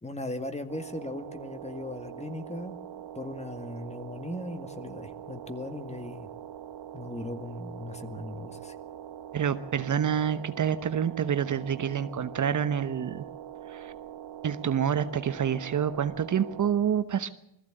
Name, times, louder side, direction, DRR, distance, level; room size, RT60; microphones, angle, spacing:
voice 1, 0.0-2.8 3.2-6.3 6.9-8.7, left 2 dB, 15° left, 9 dB, 2.0 m, -38 dB
sound 1, 0.7-16.7, right 10 dB, 80° right, 1.7 m, -43 dB
voice 2, 9.3-13.2 13.7-13.9 14.4-17.3, right 8 dB, 45° right, 11 dB, 1.0 m, -27 dB
21.0 x 14.5 x 8.9 m, 0.81 s
cardioid pair, 100°, 43 cm